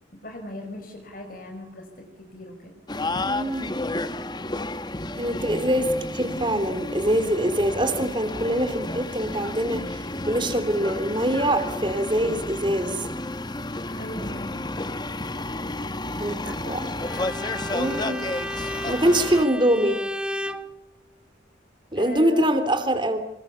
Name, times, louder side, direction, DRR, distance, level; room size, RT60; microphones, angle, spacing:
voice 1, 0.1-1.8 2.3-2.7 13.9-14.9 16.4-17.2 21.9-22.4, left 1 dB, 50° left, 3 dB, 5.0 m, -38 dB
sound 1, 2.9-19.4, left 2 dB, 20° left, 1.1 m, -31 dB
voice 2, 3.2-3.8 5.2-13.1 16.2-16.4 16.7-16.8 17.7-18.3 18.9-20.0 21.9-23.2, right 1 dB, 25° right, 9 dB, 3.1 m, -24 dB
Bowed string instrument, 17.0-20.7, equal, 5° right, 1.2 m, -33 dB
27.0 x 25.0 x 7.1 m, 0.78 s
head